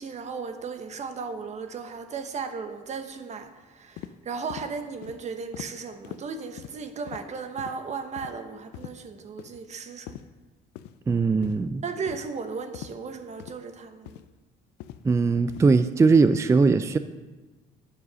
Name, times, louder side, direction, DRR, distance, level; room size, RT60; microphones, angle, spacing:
voice 1, 0.0-10.2 11.8-14.2, right 5 dB, 40° right, 8 dB, 1.1 m, -36 dB
sound 1, 4.0-4.1 4.5-4.7 5.0-5.2 5.5-5.7 6.0-6.2 6.6-6.8 7.1-7.2 7.6-7.8 8.2-8.3 8.7-8.9 9.4-9.6 10.1-10.2 10.8-10.9 11.4-11.6 12.1-12.3 12.7-12.9 13.4-13.6 14.1-14.2 14.8-15.0 15.5-15.7 16.1-16.3, left 13 dB, 90° left, 0.5 m, -41 dB
voice 2, 11.1-11.8 15.0-17.0, right 4 dB, 15° right, 12 dB, 0.4 m, -20 dB
9.7 x 7.3 x 6.3 m, 1.2 s
cardioid pair, 110°, 17 cm